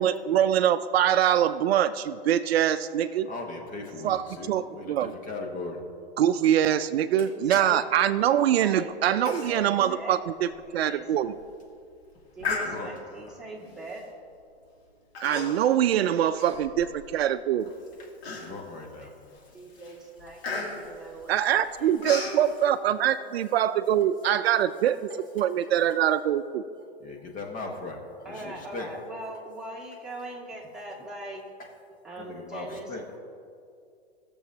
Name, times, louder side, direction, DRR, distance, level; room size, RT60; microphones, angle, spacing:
voice 1, 0.0-3.3 4.0-5.1 6.2-11.3 15.2-17.7 21.3-25.1 25.3-26.6, right 10 dB, 70° right, 13 dB, 0.5 m, -24 dB
voice 2, 3.3-5.8 7.5-7.7 12.5-12.9 18.3-19.1 27.0-28.0 28.3-28.9 32.2-33.0, left 3 dB, 25° left, 2 dB, 1.5 m, -38 dB
voice 3, 7.1-7.8 8.6-10.2 10.6-11.4 12.3-14.0 19.0-19.1 19.5-22.0 28.2-31.4 32.0-33.2, right 2 dB, ahead, -4 dB, 2.1 m, -41 dB
Human voice, 9.3-9.6 9.9-10.0 10.5-10.6 11.2-11.4 12.4-13.1 13.9-14.1 15.1-15.8 16.1-17.2 17.6-17.7 18.2-18.8 19.3-19.5 19.8-22.4, left 4 dB, 75° left, 2.9 m, -35 dB
19.5 x 7.0 x 2.9 m, 2.4 s
hypercardioid pair, 110°, 31 cm